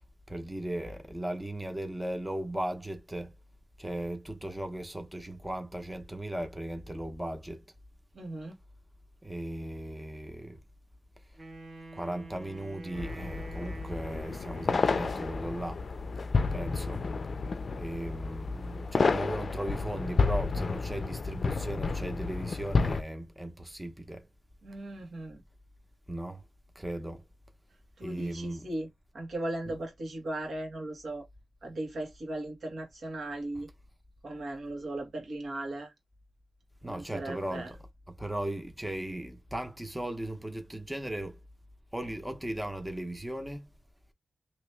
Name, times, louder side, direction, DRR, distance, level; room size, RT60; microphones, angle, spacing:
voice 1, 0.3-3.3 3.8-7.6 9.2-10.6 11.9-15.9 16.5-17.1 17.8-24.3 26.1-26.4 26.7-27.3 28.0-28.7 29.7-29.8 36.8-37.8 38.2-41.4 41.9-43.7, right 1 dB, 10° right, 0.8 m, -37 dB
voice 2, 8.1-8.5 24.6-25.4 28.0-31.3 31.6-33.7 34.2-35.9 36.8-37.7, right 1 dB, 80° right, 1.6 m, -37 dB
Wind instrument woodwind instrument, 11.3-15.3, right 2 dB, 45° right, 1.1 m, -47 dB
sound 1, 12.9-23.0, left 4 dB, 65° left, 0.4 m, -31 dB
3.0 x 2.9 x 3.3 m
cardioid pair, 65°, 0 cm